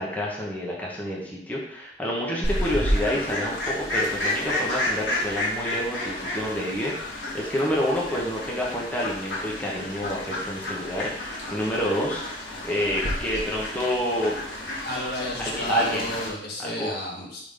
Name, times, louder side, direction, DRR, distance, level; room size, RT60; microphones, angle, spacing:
voice 1, 0.0-14.4 15.4-16.1 16.6-16.9, equal, 10° left, -4 dB, 1.1 m, -28 dB
Fowl, 2.4-16.3, left 1 dB, 85° left, 1.7 m, -31 dB
voice 2, 14.8-17.4, left 1 dB, 65° left, -2 dB, 1.7 m, -32 dB
5.1 x 4.0 x 5.1 m, 0.71 s
head